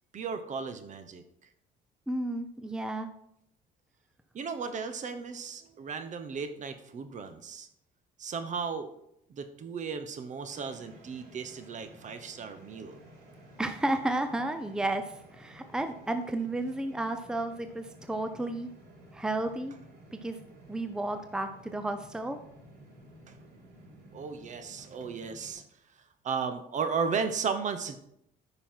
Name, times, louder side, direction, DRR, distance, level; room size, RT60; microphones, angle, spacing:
voice 1, 0.1-1.2 4.3-7.7 8.2-8.9 9.3-13.0 23.3-23.4 24.1-25.6 26.2-28.0, right 5 dB, 45° right, 9 dB, 1.1 m, -35 dB
voice 2, 2.1-3.1 13.6-18.7 19.1-19.7 20.1-20.4 20.7-22.4, right 2 dB, 5° right, 8 dB, 0.6 m, -32 dB
sound 1, 10.5-25.5, right 1 dB, 65° right, 3.9 m, -54 dB
9.3 x 5.6 x 4.5 m, 0.75 s
cardioid pair, 110°, 17 cm